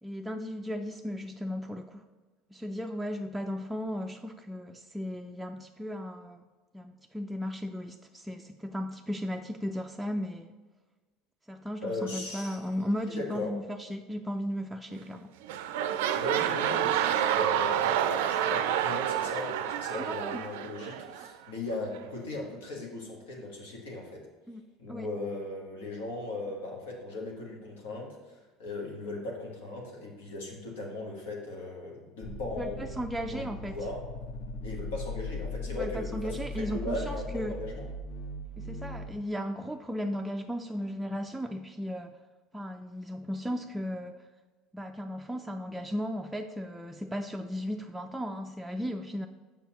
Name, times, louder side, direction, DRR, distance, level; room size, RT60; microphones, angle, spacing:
voice 1, 0.0-2.1 2.5-6.4 6.7-10.5 11.5-15.3 20.0-20.4 24.5-24.6 24.9-25.1 32.6-32.7 33.0-33.7 35.8-37.5 38.6-42.1 42.5-44.3 44.7-49.3, equal, 5° right, 3 dB, 0.3 m, -36 dB
voice 2, 11.8-12.6 13.1-13.5 16.1-24.3 24.8-33.0 33.2-34.0 34.6-37.9, left 2 dB, 85° left, -1 dB, 1.4 m, -38 dB
sound 1, 14.9-15.2 15.4-21.3 22.0-22.1, right 10 dB, 80° right, 0.3 m, -29 dB
sound 2, 32.2-39.1, left 1 dB, 50° left, 1.0 m, -39 dB
7.0 x 5.3 x 3.0 m, 1.3 s
hypercardioid pair, 80°, 0 cm